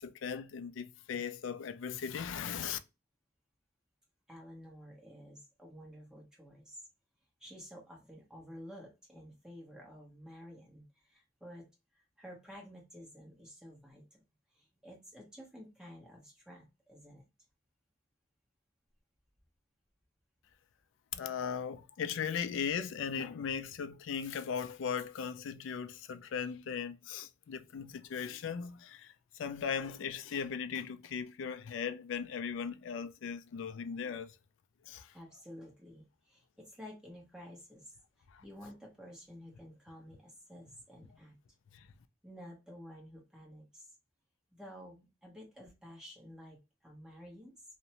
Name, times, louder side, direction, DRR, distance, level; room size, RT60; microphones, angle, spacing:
voice 1, 0.0-2.8 21.1-34.4 34.9-35.1 38.3-38.4 41.7-41.9, left 7 dB, 70° left, 0.3 m, -38 dB
voice 2, 4.3-6.8 7.4-11.7 11.9-14.2 14.5-17.2 35.1-41.4 42.2-43.9 44.5-47.5, equal, 5° right, 1.0 m, -52 dB
2.6 x 2.1 x 2.8 m
head